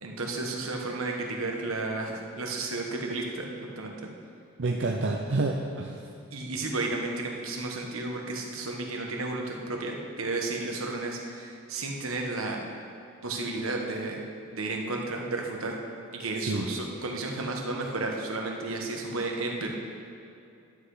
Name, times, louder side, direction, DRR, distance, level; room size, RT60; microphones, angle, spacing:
voice 1, 0.0-3.9 6.3-12.6 13.2-14.2 14.5-15.8 16.1-19.7, right 2 dB, 75° right, 1 dB, 1.3 m, -32 dB
voice 2, 4.6-6.0 16.4-16.7, right 2 dB, 60° right, 1 dB, 0.6 m, -28 dB
11.0 x 8.1 x 4.9 m, 2.6 s
head